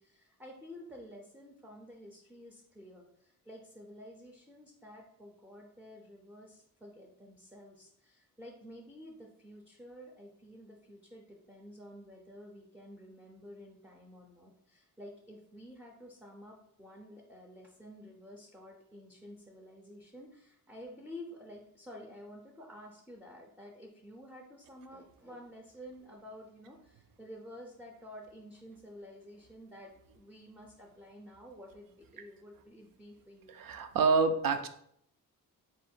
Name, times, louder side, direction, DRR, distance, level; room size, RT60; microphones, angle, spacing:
voice 1, 0.0-33.6, equal, 5° right, 0 dB, 0.4 m, -51 dB
voice 2, 33.5-34.7, right 4 dB, 70° right, 9 dB, 0.5 m, -27 dB
3.8 x 2.5 x 4.3 m, 0.70 s
wide cardioid pair, 165°, 36 cm